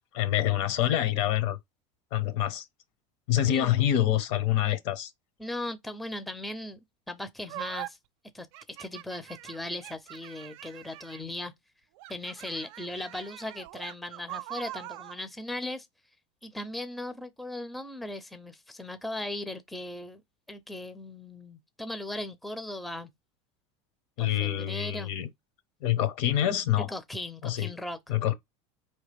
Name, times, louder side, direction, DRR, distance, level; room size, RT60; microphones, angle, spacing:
voice 1, 0.1-1.6 2.1-2.7 3.3-5.1 24.2-25.3 25.8-26.9 27.4-27.7 28.1-28.3, left 12 dB, 65° left, 1.0 m, -26 dB
voice 2, 5.4-6.8 7.1-8.0 8.3-11.5 12.1-15.9 16.4-20.2 20.5-23.1 24.2-25.1 26.8-28.0, left 1 dB, ahead, 0.5 m, -38 dB
sound 1, 7.5-7.9 8.5-11.3 12.0-15.2, right 17 dB, 70° right, 0.4 m, -43 dB
4.5 x 3.1 x 3.3 m
supercardioid pair, 125°, 15 cm